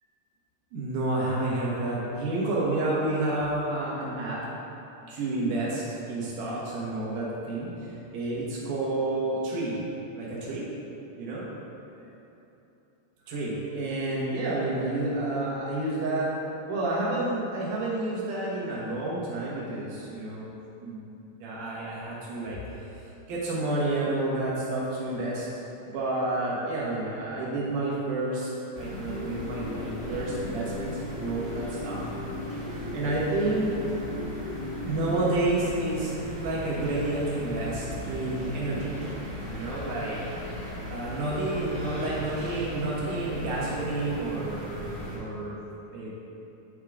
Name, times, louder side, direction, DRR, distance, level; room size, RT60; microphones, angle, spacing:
voice 1, 0.7-4.4 5.1-9.7 10.1-10.7 11.2-11.4 13.3-16.3 16.7-20.5 20.8-21.1 21.4-22.6 23.3-25.5 25.8-28.5 28.8-32.0 32.9-33.7 34.8-36.1 36.4-39.0 39.5-40.2 40.9-45.6 45.9-46.1, right 2 dB, 70° right, -6 dB, 2.9 m, -30 dB
sound 1, 28.7-45.2, equal, 40° right, 1.1 m, -38 dB
sound 2, 28.9-36.1, left 3 dB, 80° left, 1.5 m, -38 dB
9.5 x 3.8 x 4.8 m, 3.0 s
omnidirectional pair, 3.8 m